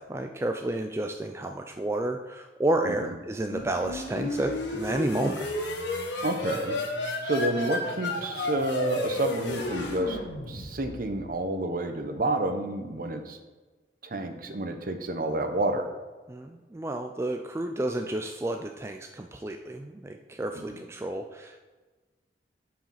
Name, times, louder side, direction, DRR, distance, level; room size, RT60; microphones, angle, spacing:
voice 1, 0.1-5.4 16.3-21.6, right 1 dB, 15° right, 4 dB, 0.3 m, -31 dB
voice 2, 2.8-3.2 6.2-6.7 7.2-10.2 10.4-13.4 14.0-15.9 20.5-20.9, right 1 dB, 50° right, 7 dB, 0.8 m, -29 dB
sound 1, 3.4-11.1, left 2 dB, 75° left, 1.4 m, -32 dB
9.0 x 4.9 x 5.7 m, 1.2 s
head